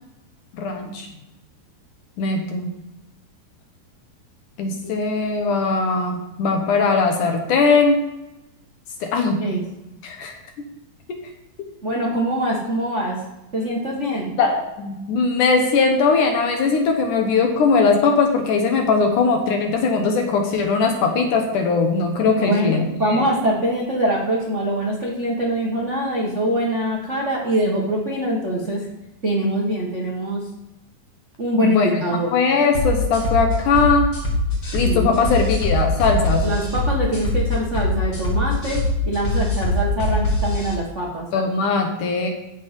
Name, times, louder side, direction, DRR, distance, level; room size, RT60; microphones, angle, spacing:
voice 1, 0.5-1.1 2.2-2.7 4.6-8.0 9.0-9.4 10.0-10.3 14.4-23.3 31.6-32.0 32.3-34.1 34.7-36.5 41.3-42.3, left 4 dB, 65° left, 4 dB, 2.2 m, -20 dB
voice 2, 11.8-13.2 13.5-14.3 22.4-28.9 29.2-30.5 31.4-32.3 34.8-35.1 36.4-41.3, right 1 dB, 75° right, -3 dB, 0.6 m, -23 dB
sound 1, 32.7-40.7, left 1 dB, 35° left, 1.9 m, -22 dB
15.0 x 6.1 x 5.2 m, 0.94 s
omnidirectional pair, 4.6 m